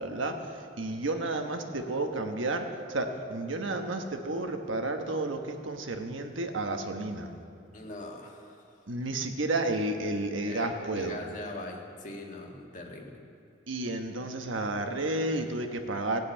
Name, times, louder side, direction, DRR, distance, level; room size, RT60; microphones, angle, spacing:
voice 1, 0.0-7.3 8.9-11.2 13.7-16.2, right 2 dB, 80° right, 5 dB, 1.2 m, -31 dB
voice 2, 7.7-8.8 10.5-13.2, left 2 dB, 40° left, 1 dB, 1.7 m, -42 dB
16.0 x 7.8 x 8.9 m, 2.7 s
head